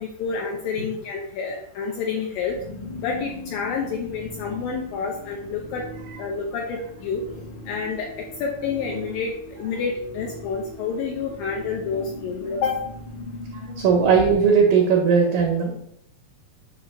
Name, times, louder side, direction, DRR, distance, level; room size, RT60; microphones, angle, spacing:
voice 1, 0.2-2.5 3.0-5.8 6.2-7.2 7.7-8.1 8.4-9.3 9.6-12.8, left 5 dB, 80° left, -1 dB, 2.0 m, -28 dB
sound 1, 2.4-14.5, left 1 dB, 55° left, 1.3 m, -40 dB
voice 2, 13.5-15.7, right 6 dB, 80° right, 1 dB, 2.0 m, -18 dB
6.6 x 2.9 x 5.3 m, 0.74 s
omnidirectional pair, 4.7 m